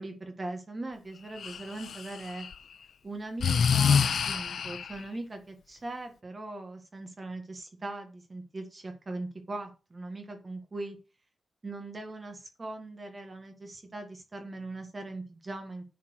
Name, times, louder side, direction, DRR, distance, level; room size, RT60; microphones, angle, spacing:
voice 1, 0.0-2.5 3.0-11.0 11.6-15.9, right 2 dB, 25° right, 4 dB, 1.6 m, -40 dB
Breathing, 1.4-2.5 3.4-5.0, left 6 dB, 70° left, 0.7 m, -26 dB
10.0 x 4.4 x 6.2 m, 0.33 s
wide cardioid pair, 140°, 0 cm